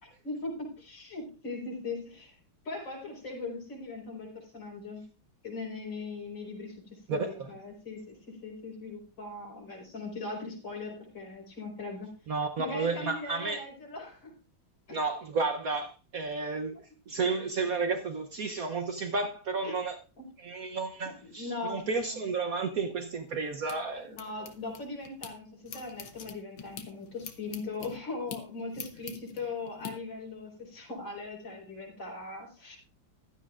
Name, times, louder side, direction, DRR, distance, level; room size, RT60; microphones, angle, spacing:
voice 1, 0.0-2.4 2.7-5.0 5.4-12.1 12.6-14.3 14.9-15.0 19.6-19.7 20.2-20.3 21.2-22.2 24.1-32.8, left 3 dB, 65° left, 5.1 m, -40 dB
voice 2, 7.1-7.5 12.3-13.6 14.9-16.8 17.1-20.0 20.4-24.5, right 4 dB, 55° right, 1.1 m, -32 dB
sound 1, 23.0-25.3 25.7-29.9, left 7 dB, 80° left, 2.0 m, -45 dB
15.5 x 12.0 x 2.5 m
omnidirectional pair, 2.2 m